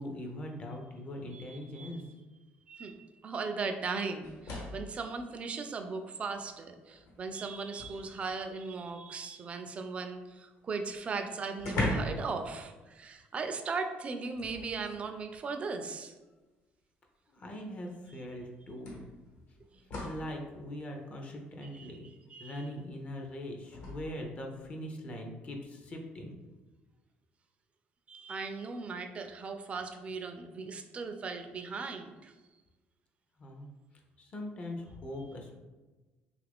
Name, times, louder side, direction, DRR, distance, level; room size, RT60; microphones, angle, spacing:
voice 1, 0.0-2.0 17.3-19.0 20.0-22.1 22.4-26.4 33.4-33.7 34.2-35.6, left 1 dB, 35° left, 2 dB, 0.5 m, -41 dB
voice 2, 1.3-2.0 2.7-3.0 3.2-16.1 21.7-21.9 22.3-22.7 28.1-32.3, right 4 dB, 30° right, 6 dB, 0.3 m, -38 dB
sound 1, 4.2-5.0 6.3-6.4 6.9-8.5 10.6-10.7 10.9-11.0 11.6-12.3 12.6-12.8 14.3-15.1 16.2-16.3 17.9-18.0 18.8-20.3 23.7-23.9, left 1 dB, 65° left, 1.1 m, -38 dB
2.9 x 2.4 x 3.4 m, 1.2 s
cardioid pair, 120°, 4 cm